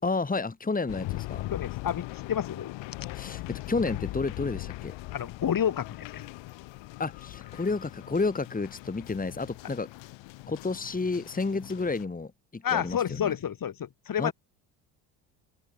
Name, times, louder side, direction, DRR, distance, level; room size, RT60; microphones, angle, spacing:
voice 1, 0.0-1.5 3.1-4.9 7.0-9.9 10.5-13.3 14.2-14.3, left 3 dB, 20° left, 2.8 m, -31 dB
sound 1, 0.9-12.1, left 19 dB, 70° left, 6.1 m, -40 dB
voice 2, 1.5-2.7 5.1-6.3 12.6-14.3, left 9 dB, 45° left, 4.5 m, -30 dB
hypercardioid pair, 70°, 46 cm